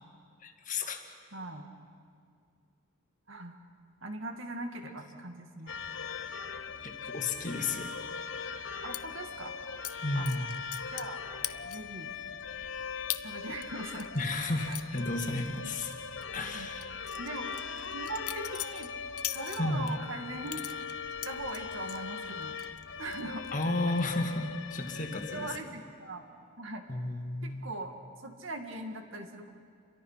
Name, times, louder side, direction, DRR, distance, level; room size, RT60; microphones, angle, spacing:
voice 1, 0.4-1.0 6.8-8.0 10.0-10.5 14.2-15.9 16.3-16.9 19.6-19.9 23.5-25.6 26.9-27.7, left 2 dB, 35° left, 4 dB, 1.9 m, -33 dB
voice 2, 1.3-1.7 3.3-3.6 4.0-5.8 8.8-9.5 10.2-10.5 10.9-11.2 11.6-12.2 13.2-14.1 14.6-14.8 16.5-16.7 17.2-17.5 17.9-18.9 19.3-20.6 21.2-22.6 23.0-23.5 25.1-26.2 26.6-26.8 27.6-28.0 28.2-29.5, right 2 dB, 60° right, 4 dB, 2.3 m, -40 dB
sound 1, 5.7-25.6, left 6 dB, 55° left, 0.9 m, -40 dB
sound 2, 8.9-9.0 9.8-9.9 10.3-11.1 11.4-12.0 12.4-12.5 13.1-13.2 13.6-15.9 16.2-16.4 16.8-19.9 20.5-22.0 22.4-22.8 23.1-23.5, left 15 dB, 90° left, 0.8 m, -40 dB
29.5 x 23.0 x 5.8 m, 2.2 s
head